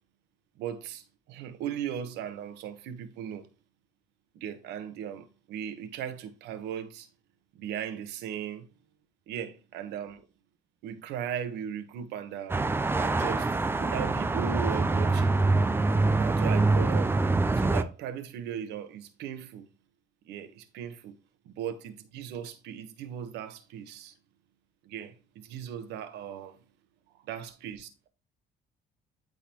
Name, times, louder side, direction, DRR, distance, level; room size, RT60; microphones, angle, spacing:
voice 1, 0.6-3.5 4.4-7.1 7.5-8.7 9.3-10.2 10.8-12.6 13.0-13.5 13.8-15.3 16.1-17.1 17.5-19.7 20.3-21.1 21.4-24.1 24.8-26.6 27.3-28.1, right 9 dB, 85° right, 1.2 m, -37 dB
sound 1, 12.5-17.8, right 3 dB, 15° right, 0.6 m, -25 dB
12.0 x 4.0 x 3.0 m
cardioid pair, 110°, 17 cm